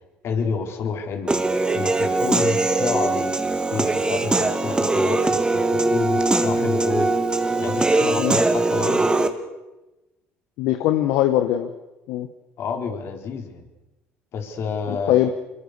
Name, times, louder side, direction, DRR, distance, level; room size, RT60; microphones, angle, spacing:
voice 1, 0.2-1.4 1.7-7.1 7.6-9.1 12.6-13.7 14.3-15.3, left 5 dB, 60° left, 5 dB, 4.4 m, -29 dB
Human voice / Piano, 1.3-9.3, right 2 dB, 15° right, 2.5 m, -21 dB
voice 2, 10.6-11.7 12.1-12.3 14.9-15.3, left 13 dB, 75° left, 8 dB, 1.3 m, -21 dB
24.5 x 23.0 x 6.8 m, 1.0 s
supercardioid pair, 75°, 5 cm